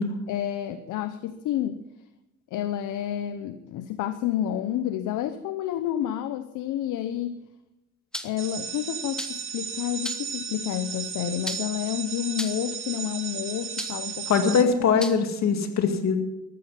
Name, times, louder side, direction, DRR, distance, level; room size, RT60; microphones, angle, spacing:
voice 1, 0.3-1.8 2.5-7.4 8.2-14.5 14.8-15.0, left 11 dB, 90° left, 11 dB, 0.8 m, -30 dB
sound 1, 8.1-8.5 9.2-9.5 10.0-10.4 11.4-11.9 12.4-12.7 13.8-14.1 15.0-15.2, equal, 5° left, 1.4 m, -35 dB
sound 2, 8.4-14.6, right 6 dB, 40° right, 1.9 m, -35 dB
voice 2, 14.3-16.2, left 6 dB, 60° left, 6 dB, 2.3 m, -22 dB
14.0 x 12.5 x 5.7 m, 0.93 s
cardioid pair, 90°, 30 cm